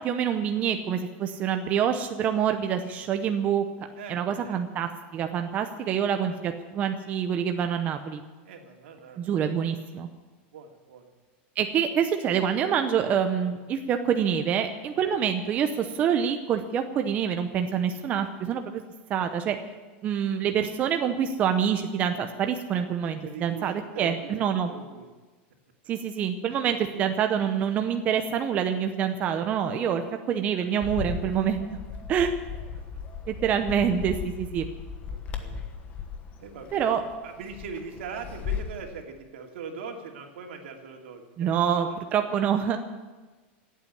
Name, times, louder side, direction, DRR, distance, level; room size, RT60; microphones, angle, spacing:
voice 1, 0.0-3.6 4.1-8.2 9.2-10.1 11.6-18.8 19.1-19.6 20.0-24.8 25.9-30.0 30.3-31.7 32.1-32.3 33.3-34.7 36.7-37.0 41.4-42.8, right 8 dB, 25° right, 6 dB, 0.7 m, -26 dB
voice 2, 4.0-4.6 5.8-5.9 6.3-6.4 8.4-9.5 10.5-11.1 15.0-15.1 23.2-24.4 24.7-25.1 26.4-26.8 29.8-30.1 30.8-30.9 32.7-32.8 35.1-35.6 36.4-37.0 37.2-42.0 42.3-42.4, right 5 dB, 75° right, 2 dB, 2.7 m, -42 dB
Bird, 30.8-38.8, left 6 dB, 20° left, 1.2 m, -36 dB
16.5 x 8.4 x 9.7 m, 1.3 s
supercardioid pair, 170°, 6 cm